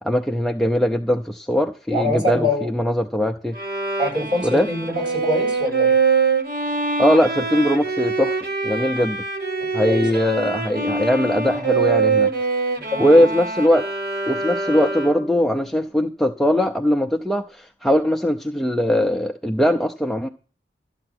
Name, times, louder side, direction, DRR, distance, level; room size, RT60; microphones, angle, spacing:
voice 1, 0.0-3.6 4.4-4.7 7.0-8.4 8.6-9.2 9.7-12.3 13.0-13.8 14.3-20.3, equal, ahead, 3 dB, 0.5 m, -20 dB
voice 2, 1.9-2.7 4.0-6.0 9.9-10.2 12.8-13.2, left 1 dB, 25° right, -2 dB, 8.0 m, -24 dB
Bowed string instrument, 3.5-15.4, right 4 dB, 55° right, 1.8 m, -24 dB
13.0 x 8.8 x 6.1 m, 0.38 s
head